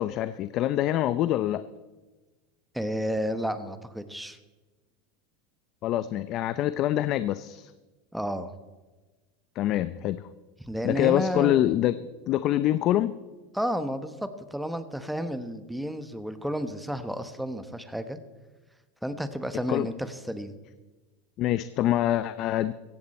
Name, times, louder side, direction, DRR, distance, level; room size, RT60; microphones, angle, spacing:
voice 1, 0.0-1.6 5.8-7.7 9.6-10.2 10.8-12.0 12.3-13.1 19.7-19.9 21.4-22.7, left 13 dB, 50° left, 14 dB, 0.5 m, -25 dB
voice 2, 2.7-4.4 8.1-8.5 10.6-11.7 13.5-18.2 19.0-20.6, equal, ahead, 10 dB, 1.2 m, -31 dB
16.0 x 15.0 x 4.3 m, 1.2 s
supercardioid pair, 115°, 0 cm